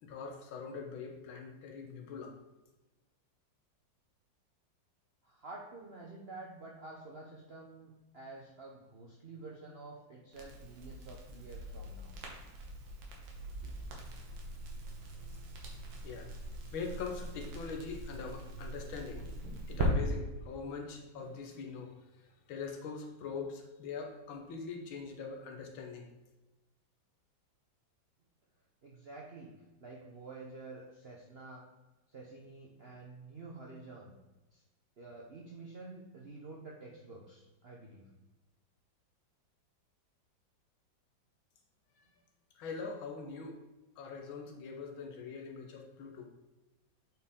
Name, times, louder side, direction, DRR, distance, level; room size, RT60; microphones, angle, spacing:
voice 1, 0.0-2.4 16.0-16.3 16.7-19.3 19.7-21.9 22.5-26.1 42.0-42.1 42.5-43.6 44.0-46.3, left 5 dB, 85° left, 3 dB, 1.8 m, -42 dB
voice 2, 5.2-12.2 21.1-21.3 28.8-29.5 29.8-31.6 32.1-34.1 34.5-34.6 35.0-38.1, right 3 dB, 60° right, -2 dB, 0.6 m, -49 dB
Crackle, 10.3-19.9, right 1 dB, 85° right, 2.0 m, -41 dB
7.9 x 4.4 x 3.6 m, 1.1 s
omnidirectional pair, 2.1 m